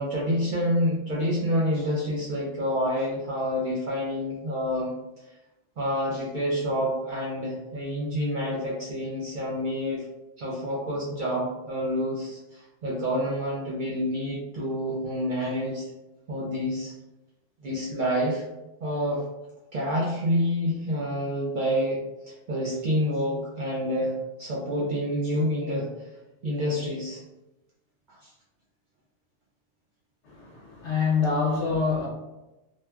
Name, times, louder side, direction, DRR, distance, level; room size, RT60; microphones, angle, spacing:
voice 1, 0.0-4.9 5.8-10.0 10.4-15.9 16.3-16.9 17.6-18.4 18.8-19.2 19.7-25.9 26.4-27.2 28.2-28.3, equal, 60° right, -5 dB, 0.5 m, -28 dB
voice 2, 30.4-32.1, left 5 dB, 70° left, -3 dB, 1.1 m, -25 dB
3.0 x 2.1 x 2.3 m, 0.99 s
omnidirectional pair, 1.2 m